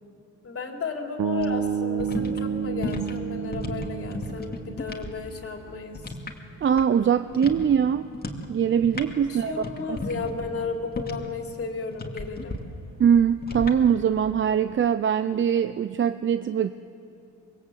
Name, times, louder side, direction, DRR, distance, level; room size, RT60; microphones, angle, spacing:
voice 1, 0.4-6.2 9.3-12.6, left 4 dB, 50° left, 2 dB, 3.6 m, -34 dB
sound 1, 1.2-5.3, right 7 dB, 75° right, 1.5 m, -30 dB
sound 2, 1.3-5.1 5.4-7.1 7.3-7.7 8.1-8.5 8.7-11.4 11.9-12.6 13.4-13.8, left 2 dB, 30° left, 2.6 m, -34 dB
voice 2, 6.6-8.1 8.5-10.0 13.0-16.7, right 8 dB, 40° right, 11 dB, 0.6 m, -22 dB
25.5 x 21.0 x 8.4 m, 2.7 s
cardioid pair, 90°, 30 cm